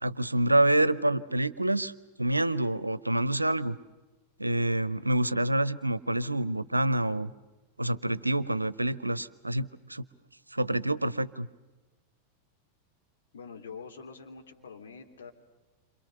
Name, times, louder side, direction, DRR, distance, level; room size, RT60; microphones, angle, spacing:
voice 1, 0.0-1.9 2.2-3.8 4.4-7.3 7.8-10.0 10.5-11.5, right 1 dB, 85° right, 18 dB, 0.8 m, -27 dB
voice 2, 13.3-15.3, left 5 dB, 65° left, 3 dB, 3.3 m, -45 dB
28.5 x 26.5 x 6.7 m, 1.2 s
figure-of-eight pair, 90°, 0 cm